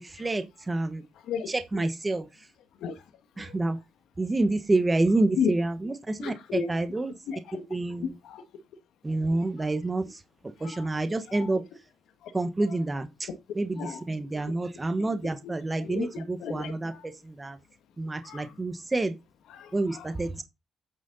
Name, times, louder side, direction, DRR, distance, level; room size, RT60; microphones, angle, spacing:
voice 1, 0.2-1.0 1.5-2.2 3.4-3.8 4.2-7.1 7.7-8.1 9.0-10.0 10.6-11.6 12.3-13.3 13.5-13.8 14.1-16.9 17.4-17.6 18.0-19.1 19.7-20.4, right 2 dB, 20° right, 1.2 m, -28 dB
voice 2, 1.3-1.9 2.8-2.9 3.4-3.5 5.4-5.5 6.2-6.7 7.3-7.6 8.0-8.4 9.6-9.7 10.6-10.9 11.3-11.5 12.2-12.3 12.7-12.8 13.7-14.0 15.0-15.1 15.4-15.5 15.8-17.0 18.2-18.5 19.5-20.1, left 7 dB, 80° left, 1.7 m, -34 dB
9.3 x 6.3 x 4.1 m
cardioid pair, 90°, 0 cm